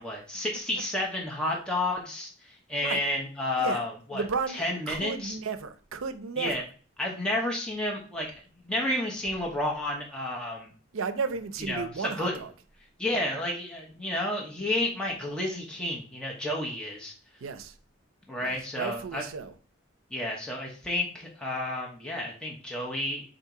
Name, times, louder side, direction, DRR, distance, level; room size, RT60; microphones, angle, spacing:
voice 1, 0.0-4.2 4.5-5.3 6.4-6.6 7.0-10.7 11.6-12.4 13.0-17.1 18.3-19.2 20.1-23.2, left 1 dB, 5° left, 0.8 m, -31 dB
voice 2, 4.1-6.6 10.9-12.5 17.4-17.7 18.4-19.5, right 5 dB, 80° right, 0.5 m, -33 dB
3.8 x 2.7 x 4.7 m
head